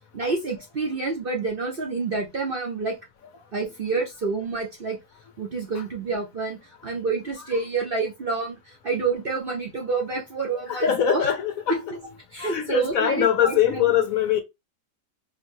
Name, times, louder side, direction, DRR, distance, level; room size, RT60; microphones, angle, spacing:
voice 1, 0.1-3.0 3.5-5.0 5.4-11.3 11.7-12.0 12.3-13.9, right 4 dB, 45° right, 0.8 m, -28 dB
voice 2, 10.7-11.8 12.4-14.4, left 10 dB, 65° left, 1.0 m, -22 dB
4.4 x 2.9 x 2.6 m
omnidirectional pair, 1.8 m